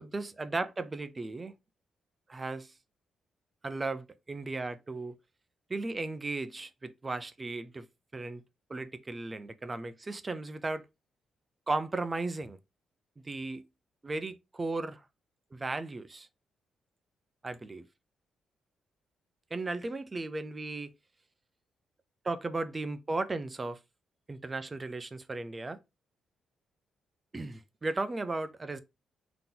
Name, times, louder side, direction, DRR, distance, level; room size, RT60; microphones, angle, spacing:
voice 1, 0.0-1.5 2.3-2.7 3.6-5.1 5.7-7.9 8.1-8.4 8.7-10.8 11.7-12.6 13.2-13.6 14.0-15.0 15.5-16.3 17.4-17.9 19.5-20.9 22.2-23.8 24.3-25.8 27.3-28.8, right 3 dB, 20° right, 0.4 m, -35 dB
3.8 x 2.9 x 3.8 m
cardioid pair, 130°, 0 cm